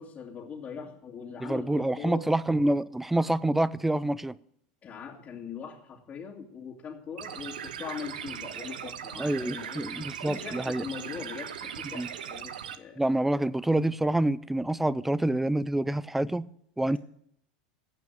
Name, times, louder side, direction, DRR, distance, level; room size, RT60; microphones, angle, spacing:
voice 1, 0.0-2.3 4.8-9.8 10.2-13.0 16.9-17.0, left 6 dB, 30° left, -4 dB, 2.3 m, -41 dB
voice 2, 1.4-4.3 9.2-10.9 11.9-12.1 13.0-16.5 16.8-17.0, right 1 dB, 5° right, 20 dB, 0.5 m, -27 dB
sound 1, 7.2-12.8, right 8 dB, 85° right, 0.9 m, -39 dB
16.0 x 5.9 x 9.2 m, 0.70 s
hypercardioid pair, 105°, 5 cm